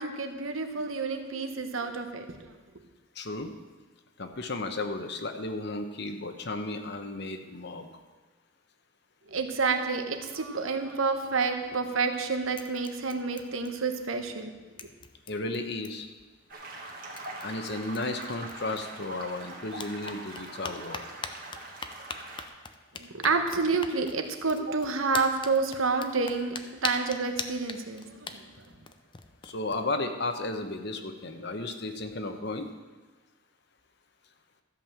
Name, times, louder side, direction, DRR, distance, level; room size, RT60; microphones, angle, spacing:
voice 1, 0.0-2.5 9.3-14.5 23.0-26.6 26.8-28.4, right 4 dB, 80° right, 6 dB, 1.1 m, -29 dB
voice 2, 3.2-3.5 4.2-7.9 15.3-16.1 17.4-21.1 29.4-32.7, left 2 dB, 55° left, 7 dB, 1.0 m, -34 dB
sound 1, 11.7-12.2 12.5-14.1 14.4-14.5 14.8-16.2 16.8-16.9 17.2-19.3 19.7-29.8, left 5 dB, 25° left, 0.5 m, -42 dB
sound 2, 16.5-22.5, right 2 dB, 45° right, 1.6 m, -42 dB
13.5 x 5.5 x 7.5 m, 1.3 s
head